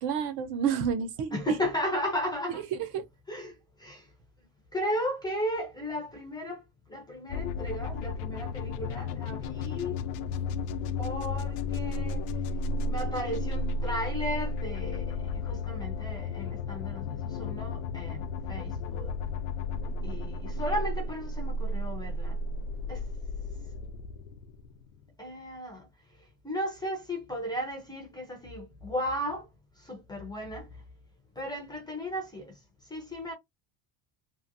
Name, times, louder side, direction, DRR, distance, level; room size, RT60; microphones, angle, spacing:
voice 1, 0.0-1.6 2.8-3.0, right 7 dB, 50° right, 0.6 m, -29 dB
voice 2, 1.3-2.6 3.3-3.5 3.8-4.1 4.7-6.6 6.9-10.0 11.0-12.2 12.9-19.1 20.0-22.4 22.9-23.0 25.2-25.9 26.4-29.5 29.8-30.7 31.4-32.6 32.9-33.3, left 1 dB, 10° left, 0.5 m, -35 dB
sound 1, 7.3-25.0, left 3 dB, 90° left, 0.6 m, -33 dB
2.8 x 2.5 x 2.5 m
cardioid pair, 180°, 46 cm